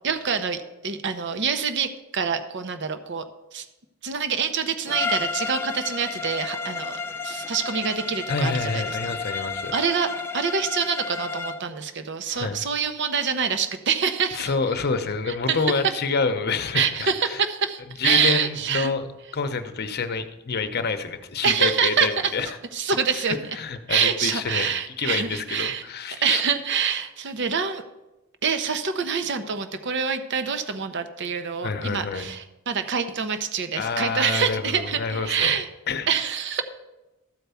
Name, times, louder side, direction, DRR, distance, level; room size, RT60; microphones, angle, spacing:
voice 1, 0.0-3.2 3.5-3.6 4.0-8.8 9.3-9.5 9.7-14.5 15.3-15.6 16.7-18.9 21.4-23.6 23.9-25.8 26.2-27.8 28.4-35.7 36.1-36.6, right 6 dB, 55° right, 9 dB, 0.7 m, -26 dB
Bowed string instrument, 4.9-11.7, left 5 dB, 10° left, 0.4 m, -31 dB
voice 2, 8.3-9.7 12.3-12.6 14.3-17.4 18.0-19.1 19.3-22.6 23.1-26.4 31.6-32.3 33.8-35.6 35.9-36.1, left 4 dB, 50° left, 8 dB, 0.8 m, -28 dB
13.5 x 4.6 x 6.9 m, 1.0 s
head